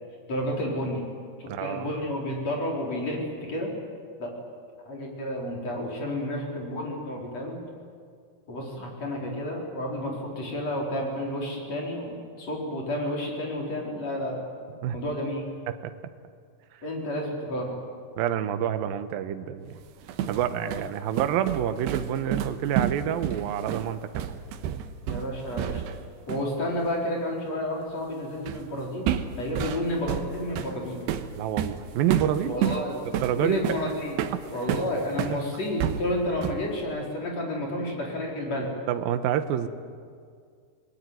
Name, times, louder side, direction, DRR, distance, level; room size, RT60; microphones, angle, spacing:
voice 1, 0.3-1.1 1.4-3.7 4.2-4.3 4.9-7.6 8.5-14.4 14.9-15.5 16.8-17.8 25.1-25.8 26.3-31.0 32.5-34.2 34.5-38.7, left 1 dB, 40° left, -1 dB, 5.4 m, -31 dB
voice 2, 1.5-1.9 14.8-15.0 15.7-15.9 16.7-16.8 18.2-19.8 20.3-24.4 31.3-32.5 33.1-34.0 34.3-34.4 35.3-35.4 38.9-39.7, right 10 dB, 70° right, 9 dB, 2.6 m, -28 dB
sound 1, 19.8-26.0 26.3-26.5 28.5-28.7 29.1-35.4 35.8-36.7, right 10 dB, 90° right, 3.2 m, -30 dB
27.0 x 20.0 x 9.4 m, 2.1 s
omnidirectional pair, 4.7 m